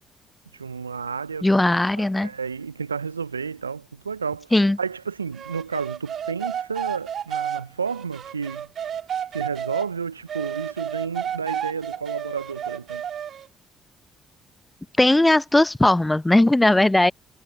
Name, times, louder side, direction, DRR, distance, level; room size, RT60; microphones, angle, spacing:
voice 1, 0.5-1.5 2.2-4.5 4.8-8.7 9.3-13.0, right 5 dB, 85° right, 0.6 m, -31 dB
voice 2, 1.4-2.3 4.5-4.8 15.0-17.1, left 1 dB, 15° left, 0.8 m, -18 dB
sound 1, 5.3-9.9 10.3-13.5, right 9 dB, 55° right, 1.9 m, -31 dB
figure-of-eight pair, 40°, 0 cm